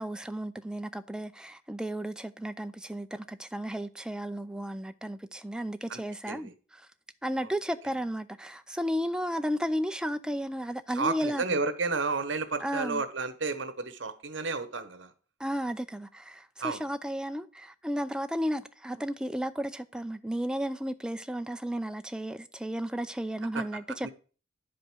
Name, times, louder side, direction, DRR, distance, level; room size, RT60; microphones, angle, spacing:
voice 1, 0.0-6.9 7.2-11.6 12.6-13.0 15.4-24.1, equal, 5° right, 0.4 m, -33 dB
voice 2, 11.0-15.1 16.6-16.8 24.0-24.1, right 4 dB, 70° right, 1.2 m, -31 dB
10.5 x 5.1 x 6.1 m
head